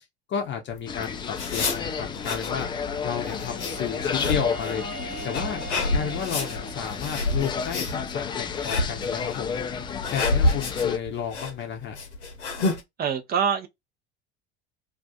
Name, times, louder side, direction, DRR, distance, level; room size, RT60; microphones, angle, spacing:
voice 1, 0.3-2.7 3.0-4.8 5.2-5.6 5.9-9.6 10.1-12.0, left 8 dB, 35° left, 0.7 m, -32 dB
sound 1, 0.7-12.8, left 2 dB, 75° left, 0.8 m, -29 dB
sound 2, 0.9-11.0, left 6 dB, 15° left, 0.3 m, -32 dB
Wind instrument woodwind instrument, 2.5-7.3, right 4 dB, 70° right, 1.1 m, -42 dB
voice 2, 13.0-13.7, right 7 dB, 30° right, 0.6 m, -24 dB
2.4 x 2.4 x 2.3 m
figure-of-eight pair, 65°, 34 cm